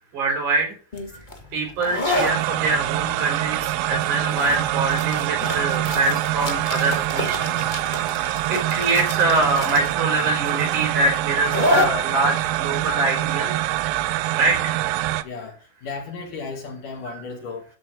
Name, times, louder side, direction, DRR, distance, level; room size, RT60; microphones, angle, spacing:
voice 1, 0.1-0.7 1.5-7.5 8.5-13.5 14.3-14.7, right 2 dB, 60° right, 2 dB, 4.9 m, -24 dB
sound 1, 0.9-14.3, left 2 dB, 45° left, 0.6 m, -29 dB
sound 2, 2.2-15.2, right 14 dB, 85° right, 2.5 m, -25 dB
voice 2, 15.2-17.7, left 4 dB, 65° left, 3 dB, 3.7 m, -35 dB
13.0 x 4.6 x 7.7 m, 0.36 s
omnidirectional pair, 4.1 m